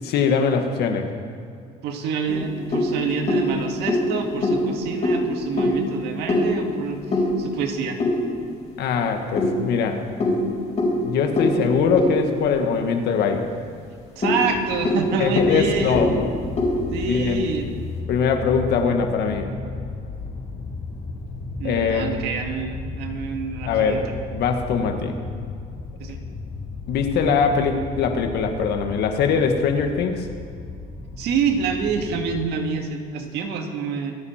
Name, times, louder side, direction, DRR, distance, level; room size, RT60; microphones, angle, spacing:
voice 1, 0.0-1.1 8.8-10.0 11.0-13.5 15.2-16.3 17.1-17.4 18.1-19.5 21.6-22.1 23.7-24.0 24.3-25.1 26.9-30.3, left 6 dB, 75° left, 5 dB, 1.7 m, -22 dB
voice 2, 1.8-8.0 14.2-16.1 16.9-17.7 21.6-24.0 26.0-26.2 31.2-34.2, right 5 dB, 90° right, 4 dB, 1.8 m, -27 dB
sound 1, 2.3-8.7 9.4-13.2 13.6-13.7 14.0-17.6, left 1 dB, 40° left, 4.7 m, -24 dB
sound 2, 14.3-32.5, left 3 dB, 55° left, 3.2 m, -35 dB
25.5 x 9.7 x 4.4 m, 2.3 s
cardioid pair, 110°, 17 cm